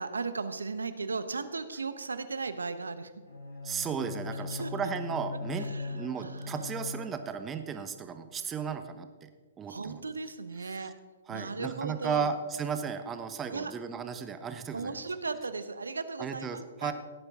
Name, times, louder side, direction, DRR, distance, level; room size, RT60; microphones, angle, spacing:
voice 1, 0.0-3.1 4.3-4.7 5.6-6.8 9.7-10.9 11.3-12.3 13.5-13.7 14.7-16.9, right 4 dB, 85° right, 11 dB, 0.9 m, -36 dB
Bowed string instrument, 3.2-7.5, left 3 dB, 90° left, 3.8 m, -39 dB
voice 2, 3.6-9.3 9.6-10.0 10.8-10.9 11.3-14.9 16.2-16.9, right 6 dB, 20° right, 8 dB, 1.0 m, -35 dB
17.0 x 9.2 x 3.6 m, 1.4 s
hypercardioid pair, 125°, 0 cm